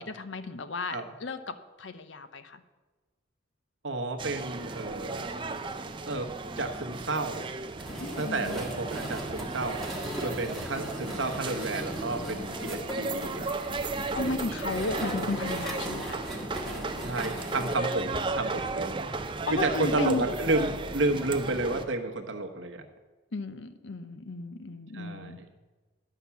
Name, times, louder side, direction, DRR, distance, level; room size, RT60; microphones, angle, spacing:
voice 1, 0.0-2.6 8.0-8.6 14.1-16.2 19.5-20.2 23.3-25.4, left 3 dB, 65° left, 11 dB, 0.7 m, -34 dB
voice 2, 3.8-5.3 6.1-6.3 6.6-7.5 8.2-9.8 10.2-13.5 17.0-19.0 19.5-22.8 24.9-25.5, right 2 dB, 65° right, 4 dB, 1.1 m, -31 dB
sound 1, 4.2-21.8, right 3 dB, 25° right, 0.5 m, -35 dB
sound 2, 7.8-17.7, equal, ahead, 1.5 m, -38 dB
11.5 x 5.8 x 7.0 m, 1.3 s
head